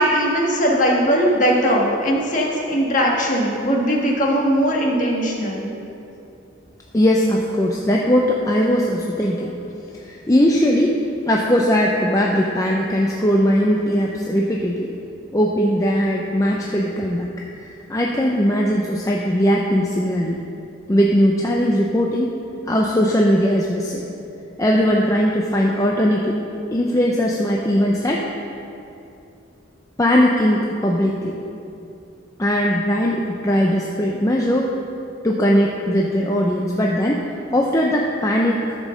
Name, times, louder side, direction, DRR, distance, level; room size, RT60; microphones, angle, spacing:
voice 1, 0.0-5.7, equal, 40° left, -2 dB, 1.6 m, -19 dB
voice 2, 6.9-9.5 10.0-11.0 11.3-14.9 15.3-17.3 17.6-20.4 20.9-22.4 22.7-24.0 24.6-26.4 26.7-28.3 30.0-31.4 32.4-34.7 35.2-38.8, equal, 15° left, -2 dB, 0.5 m, -19 dB
12.0 x 5.2 x 6.5 m, 2.7 s
head